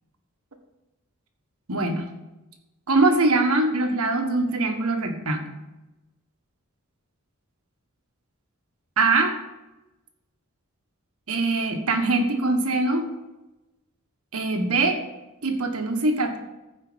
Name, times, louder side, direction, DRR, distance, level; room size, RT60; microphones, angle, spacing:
voice 1, 1.7-2.1 2.9-5.4 9.0-9.3 11.3-13.1 14.3-15.0 15.4-16.4, right 2 dB, 85° right, 5 dB, 1.5 m, -22 dB
15.0 x 5.0 x 5.2 m, 1.0 s
head